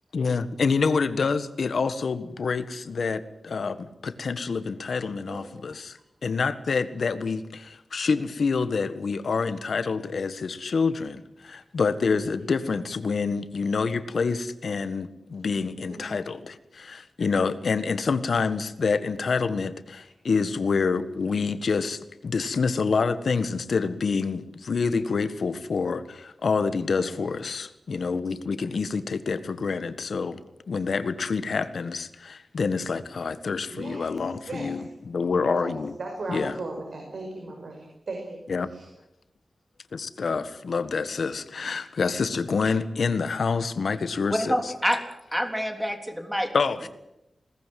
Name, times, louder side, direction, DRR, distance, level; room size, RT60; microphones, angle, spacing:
voice 1, 0.1-30.4 30.7-35.9 36.3-36.6 38.5-38.7 39.9-44.6 46.5-46.9, left 4 dB, 75° left, 12 dB, 1.6 m, -27 dB
voice 2, 27.0-27.3 33.7-34.1 34.5-34.9 35.5-38.4 38.7-38.9, right 2 dB, 70° right, 2 dB, 5.3 m, -37 dB
voice 3, 44.3-45.0 45.3-46.5, equal, 5° right, 5 dB, 3.6 m, -26 dB
21.5 x 19.0 x 9.4 m, 0.86 s
wide cardioid pair, 120°, 0 cm